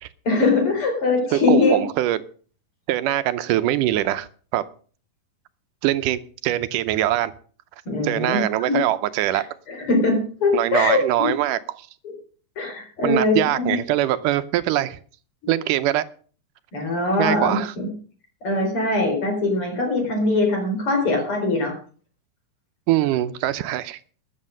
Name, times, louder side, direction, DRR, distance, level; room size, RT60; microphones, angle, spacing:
voice 1, 0.3-1.8 7.9-8.8 9.3-11.0 12.0-12.1 12.6-13.8 16.7-17.9 18.4-21.7, left 3 dB, 40° left, 3 dB, 5.1 m, -22 dB
voice 2, 1.3-2.2 2.9-4.6 5.8-7.3 8.0-9.4 10.5-11.8 13.0-15.0 15.5-16.0 17.2-17.7 22.9-24.0, right 14 dB, 85° right, 13 dB, 2.3 m, -22 dB
13.0 x 8.6 x 6.5 m, 0.42 s
omnidirectional pair, 3.7 m